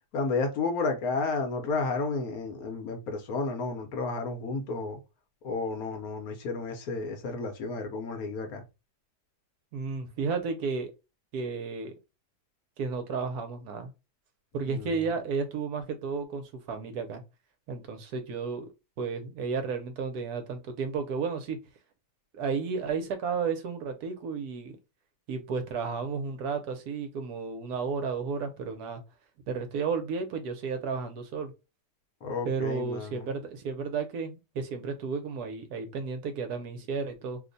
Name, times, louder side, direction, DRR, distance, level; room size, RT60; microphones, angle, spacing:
voice 1, 0.1-5.0 5.4-8.6 14.6-15.0 32.2-33.3, left 3 dB, 70° left, 1.1 m, -32 dB
voice 2, 9.7-10.9 11.3-11.9 12.8-13.9 14.5-17.2 17.7-18.7 19.0-21.6 22.3-24.8 25.3-29.0 29.5-31.5 32.4-37.4, right 5 dB, 70° right, 1.1 m, -32 dB
3.0 x 2.1 x 3.8 m
omnidirectional pair, 1.8 m